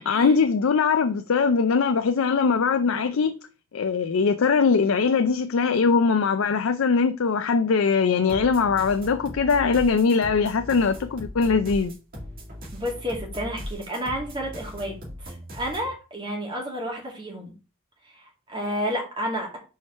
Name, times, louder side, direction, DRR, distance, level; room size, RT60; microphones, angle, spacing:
voice 1, 0.1-3.4 3.7-12.0, left 5 dB, 85° left, 0.5 m, -21 dB
sound 1, 8.3-15.9, equal, 45° right, 2.2 m, -39 dB
voice 2, 12.7-17.5 18.0-19.6, equal, 25° right, 2.3 m, -31 dB
4.7 x 4.5 x 5.5 m
head